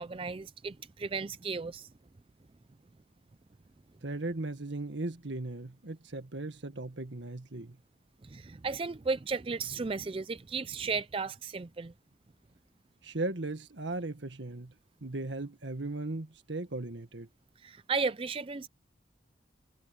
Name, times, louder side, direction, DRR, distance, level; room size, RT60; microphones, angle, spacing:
voice 1, 0.0-1.9 8.2-11.9 17.6-18.7, right 4 dB, 30° right, 0.4 m, -34 dB
voice 2, 4.0-7.8 13.0-14.7 15.0-17.3, right 2 dB, 75° right, 1.7 m, -37 dB
head